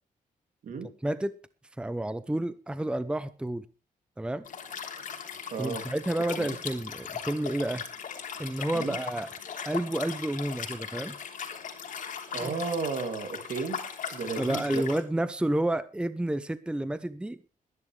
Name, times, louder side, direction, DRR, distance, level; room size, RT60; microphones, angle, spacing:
voice 1, 1.0-1.3 1.8-3.6 4.2-4.4 5.6-7.8 8.4-9.3 9.6-11.2 12.4-12.5 14.4-17.4, right 1 dB, 5° right, 0.7 m, -30 dB
Liquid, 4.4-15.0, left 7 dB, 70° left, 3.2 m, -38 dB
voice 2, 5.5-5.8 6.4-6.6 8.7-9.0 12.3-13.8 14.1-14.8, right 5 dB, 75° right, 2.9 m, -33 dB
21.0 x 11.0 x 3.3 m
cardioid pair, 115°, 14 cm